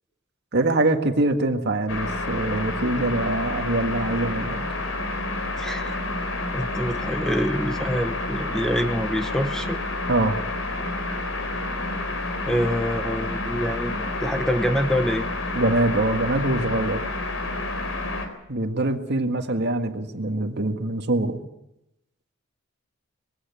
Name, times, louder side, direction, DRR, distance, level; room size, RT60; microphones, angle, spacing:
voice 1, 0.5-4.6 10.1-10.4 15.5-17.0 18.5-21.4, right 2 dB, 55° right, 6 dB, 1.8 m, -24 dB
sound 1, 1.9-18.3, left 2 dB, 80° left, 3.8 m, -29 dB
voice 2, 5.6-6.0 6.5-9.8 12.5-15.3, equal, 5° left, 8 dB, 0.9 m, -26 dB
20.5 x 16.0 x 8.5 m, 0.86 s
head